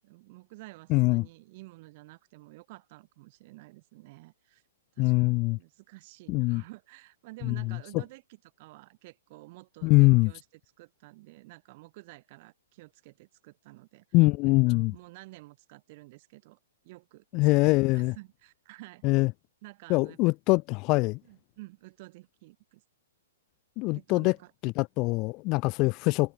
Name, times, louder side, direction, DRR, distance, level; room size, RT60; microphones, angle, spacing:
voice 1, 0.0-4.6 5.0-10.5 10.8-14.1 14.4-16.6 16.8-19.1 19.6-20.2 21.2-22.8 23.9-24.5, right 22 dB, 45° right, 6.9 m, -51 dB
voice 2, 0.9-1.3 5.0-5.6 6.3-6.6 7.4-7.8 9.8-10.3 14.1-14.9 17.3-18.1 19.0-19.3 19.9-21.2 23.8-24.3 24.6-26.3, left 25 dB, 35° left, 0.6 m, -23 dB
hypercardioid pair, 140°, 0 cm